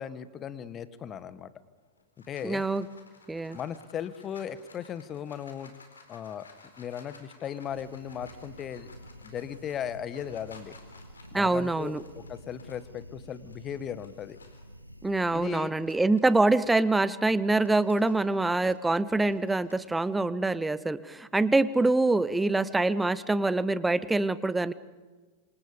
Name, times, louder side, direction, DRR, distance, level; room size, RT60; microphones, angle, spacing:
voice 1, 0.0-1.5 2.3-2.6 3.5-5.7 6.1-6.5 6.8-8.9 9.2-10.8 11.3-14.4 15.3-15.7, left 9 dB, 30° left, 15 dB, 1.4 m, -37 dB
sound 1, 1.8-14.7 15.2-20.1, left 4 dB, 75° left, 4.2 m, -56 dB
voice 2, 2.4-2.9 3.3-3.6 11.3-12.0 15.0-24.7, right 2 dB, 10° right, 17 dB, 1.0 m, -25 dB
sound 2, 7.6-15.5, equal, 90° right, 1.5 m, -49 dB
27.0 x 26.0 x 5.2 m, 1.3 s
figure-of-eight pair, 90°, 0 cm